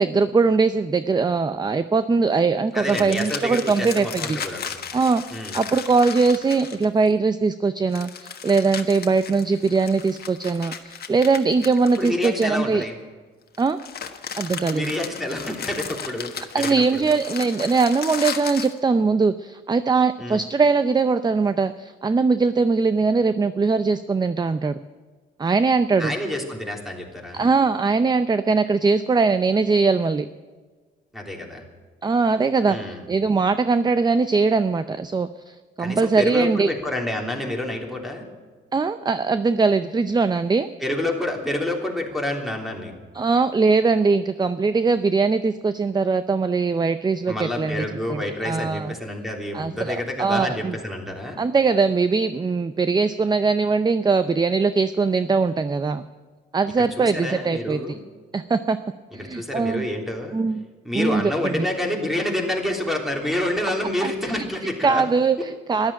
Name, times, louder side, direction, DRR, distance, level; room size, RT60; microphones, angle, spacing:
voice 1, 0.0-4.4 4.9-5.2 5.5-12.9 13.6-13.8 14.4-14.9 16.5-24.8 25.4-26.1 27.3-30.3 32.0-36.7 38.7-40.7 43.1-48.9 49.5-50.8 51.4-56.1 56.5-58.0 58.3-58.8 59.1-59.9 60.3-60.6 60.9-61.7 64.0-64.4 64.8-65.9, right 4 dB, 20° right, 12 dB, 0.5 m, -21 dB
voice 2, 2.7-4.7 5.3-5.6 12.0-12.9 14.7-17.1 20.2-20.4 26.0-27.5 31.1-31.6 32.7-33.0 35.8-38.2 40.8-42.9 47.3-51.4 56.8-58.0 59.2-60.4 60.8-65.0, left 1 dB, ahead, 1 dB, 3.3 m, -28 dB
sound 1, 2.8-7.1 7.9-12.8 13.5-18.8, left 7 dB, 50° left, 1.4 m, -35 dB
13.5 x 11.5 x 8.8 m, 1.4 s
cardioid pair, 90°, 20 cm